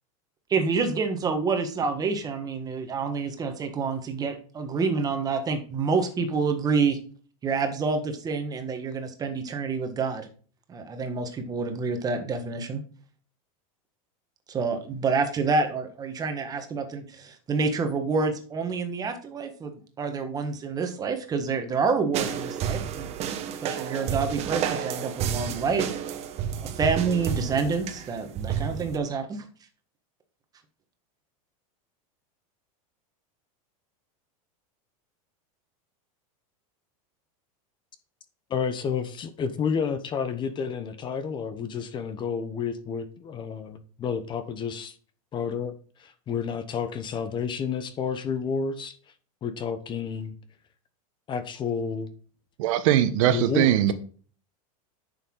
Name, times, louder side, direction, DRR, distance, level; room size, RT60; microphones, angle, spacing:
voice 1, 0.5-7.0 7.4-10.3 10.7-12.8 14.5-23.1 23.6-25.9 26.6-29.4, right 4 dB, 20° right, 1.5 m, -28 dB
sound 1, 22.1-29.0, right 9 dB, 35° right, 1.3 m, -31 dB
voice 2, 38.5-44.9 45.3-45.7 46.0-48.9 49.4-50.3 51.3-52.1 53.3-53.9, left 6 dB, 25° left, 0.9 m, -30 dB
voice 3, 52.6-53.9, right 12 dB, 65° right, 1.1 m, -21 dB
10.0 x 6.9 x 3.8 m
supercardioid pair, 145°, 18 cm